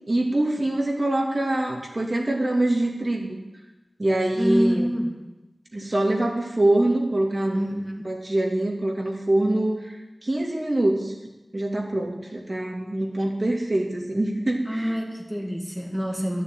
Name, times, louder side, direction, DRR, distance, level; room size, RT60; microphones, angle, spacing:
voice 1, 0.1-3.4 4.0-4.9 5.7-10.0 10.2-11.1 11.5-15.0, right 1 dB, 40° right, 0 dB, 2.3 m, -24 dB
voice 2, 4.4-5.2 7.5-8.0 14.7-16.4, equal, ahead, 0 dB, 1.8 m, -26 dB
12.0 x 6.9 x 9.0 m, 1.0 s
wide cardioid pair, 60°, 0 cm